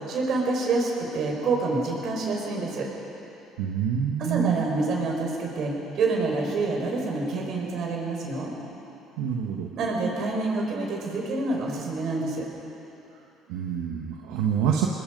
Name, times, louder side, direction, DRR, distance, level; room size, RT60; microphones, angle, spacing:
voice 1, 0.1-2.9 4.2-8.6 9.8-12.5, right 3 dB, 60° right, 0 dB, 5.4 m, -27 dB
voice 2, 3.6-4.6 9.2-9.7 13.5-14.9, right 8 dB, 85° right, 0 dB, 1.4 m, -26 dB
25.5 x 20.5 x 5.4 m, 3.0 s
supercardioid pair, 85°, 0 cm